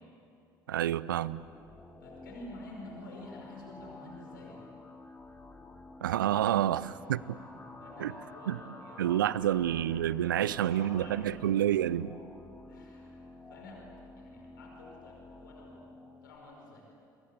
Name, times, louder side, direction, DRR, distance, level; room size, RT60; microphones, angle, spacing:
voice 1, 0.7-1.4 6.0-7.2 8.0-8.1 8.5-8.6 9.0-12.1, right 11 dB, 75° right, 19 dB, 0.7 m, -28 dB
sound 1, 1.4-16.4, left 2 dB, 15° left, 5.0 m, -50 dB
voice 2, 2.0-4.6 6.6-6.9 7.2-7.3 7.8-9.8 10.4-11.3 12.6-13.8 14.2-15.8 16.2-16.9, left 2 dB, 75° left, 0 dB, 5.4 m, -50 dB
29.5 x 23.5 x 8.4 m, 2.7 s
figure-of-eight pair, 60°, 11 cm